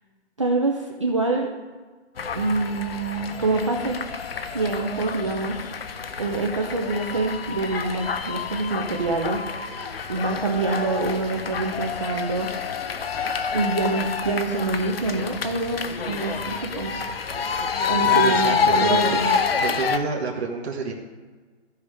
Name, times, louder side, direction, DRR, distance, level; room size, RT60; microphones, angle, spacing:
voice 1, 0.4-1.5 2.3-4.0 4.5-5.7 6.2-9.4 10.1-12.5 13.5-17.0 17.9-19.4, right 3 dB, 25° right, 0 dB, 0.5 m, -26 dB
sound 1, 2.2-20.0, left 5 dB, 55° left, 0.9 m, -27 dB
voice 2, 18.0-19.2 19.6-20.9, right 4 dB, 60° right, -1 dB, 1.6 m, -28 dB
15.0 x 5.1 x 3.5 m, 1.4 s
hypercardioid pair, 165°, 36 cm